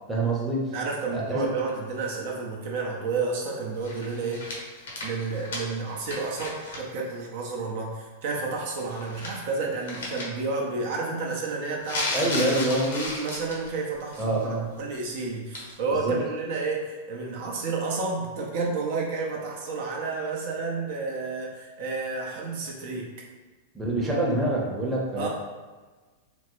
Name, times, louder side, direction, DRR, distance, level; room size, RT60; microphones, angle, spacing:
voice 1, 0.1-0.7 1.1-1.5 12.1-13.0 14.2-14.7 15.9-16.2 23.7-25.3, right 1 dB, 10° right, -4 dB, 0.7 m, -26 dB
voice 2, 0.7-4.5 5.0-23.1 25.2-25.3, right 4 dB, 60° right, -2 dB, 0.6 m, -31 dB
sound 1, 3.8-6.8 7.1-7.2 8.8-9.5 9.9-10.2 11.8-13.7 14.1-14.4 15.5-15.7, left 2 dB, 85° left, 0.8 m, -34 dB
3.4 x 2.0 x 3.0 m, 1.3 s
hypercardioid pair, 120°, 0 cm